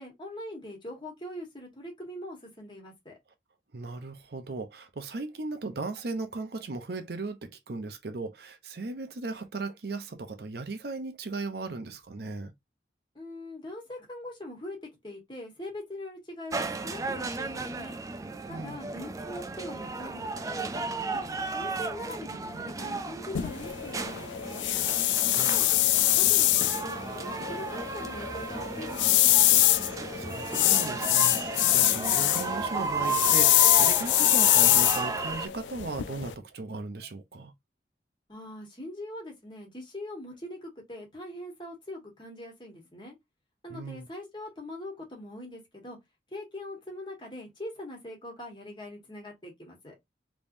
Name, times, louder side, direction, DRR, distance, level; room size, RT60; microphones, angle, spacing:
voice 1, 0.0-3.2 13.1-14.8 15.0-18.0 18.5-21.2 21.5-24.7 25.3-26.5 26.8-29.3 38.3-43.1 43.6-46.0 46.3-49.9, left 1 dB, 25° left, 1.4 m, -42 dB
voice 2, 3.7-12.5 18.5-18.8 25.2-25.5 29.9-37.5 43.7-44.1, right 3 dB, 60° right, 0.6 m, -37 dB
sound 1, 16.5-35.5, right 3 dB, 20° right, 0.3 m, -34 dB
sound 2, 23.3-36.3, left 15 dB, 90° left, 0.4 m, -24 dB
3.5 x 3.1 x 2.6 m
head